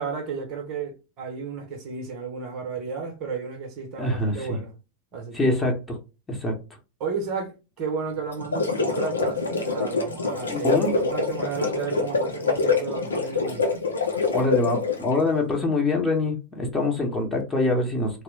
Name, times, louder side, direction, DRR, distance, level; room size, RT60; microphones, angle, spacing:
voice 1, 0.0-4.7 5.1-5.6 7.0-13.8, right 5 dB, 40° right, 0.8 m, -33 dB
voice 2, 4.0-4.6 5.3-5.7 6.3-6.5 10.4-10.9 14.3-18.2, left 2 dB, 10° left, 0.9 m, -24 dB
sound 1, 8.3-15.1, left 4 dB, 75° left, 0.6 m, -25 dB
3.0 x 2.0 x 3.1 m
figure-of-eight pair, 90°, 0 cm